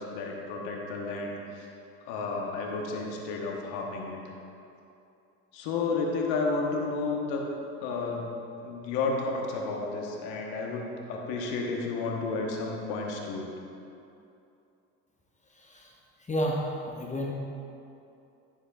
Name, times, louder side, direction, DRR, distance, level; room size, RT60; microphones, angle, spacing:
voice 1, 0.0-1.7 2.0-4.2 5.5-7.4 7.8-8.3 8.6-13.5, left 3 dB, 80° left, 0 dB, 1.1 m, -32 dB
voice 2, 15.5-15.9 16.2-17.3, equal, 20° left, -2 dB, 1.0 m, -31 dB
9.8 x 7.2 x 2.3 m, 2.7 s
supercardioid pair, 75°, 36 cm